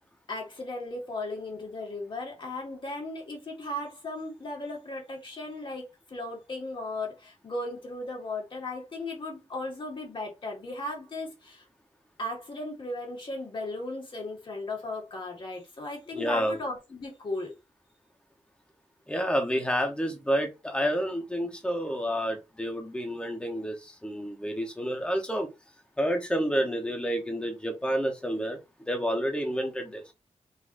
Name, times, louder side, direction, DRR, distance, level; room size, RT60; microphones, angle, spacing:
voice 1, 0.3-11.6 12.2-17.5, left 2 dB, 40° left, 1.8 m, -36 dB
voice 2, 16.1-16.6 19.1-25.5 26.0-28.6 28.9-30.0, equal, 10° left, 1.0 m, -29 dB
4.4 x 4.1 x 2.6 m
wide cardioid pair, 165°, 12 cm